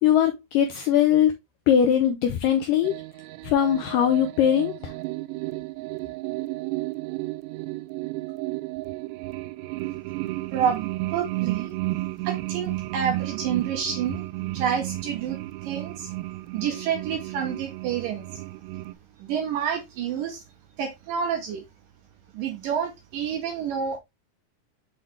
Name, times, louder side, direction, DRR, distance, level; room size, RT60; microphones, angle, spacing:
voice 1, 0.0-1.3 1.7-2.9 3.4-4.9, left 9 dB, 85° left, 1.9 m, -21 dB
sound 1, 2.8-18.9, right 19 dB, 90° right, 2.7 m, -33 dB
voice 2, 10.5-11.8 12.2-14.3 14.5-16.1 16.5-18.4 19.2-20.4 20.8-21.6 22.3-24.0, right 8 dB, 70° right, 2.2 m, -29 dB
7.9 x 3.9 x 3.2 m
omnidirectional pair, 4.7 m